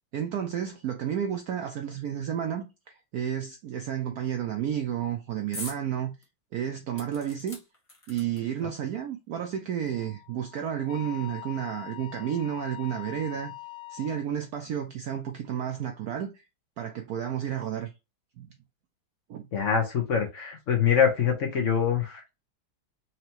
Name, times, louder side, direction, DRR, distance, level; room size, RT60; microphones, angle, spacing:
voice 1, 0.1-6.1 6.5-7.6 8.1-13.5 13.9-16.4 16.8-17.9 18.4-18.5 19.3-19.4, right 9 dB, 90° right, 0.8 m, -31 dB
sound 1, 5.5-5.8 6.2-6.3 7.0-8.6 9.5-9.6 9.9-10.0, left 1 dB, 20° left, 0.9 m, -42 dB
Wind instrument woodwind instrument, 9.9-14.2, left 19 dB, 80° left, 0.8 m, -43 dB
voice 2, 19.5-22.3, left 7 dB, 50° left, 1.0 m, -25 dB
4.6 x 2.9 x 2.9 m
omnidirectional pair, 2.3 m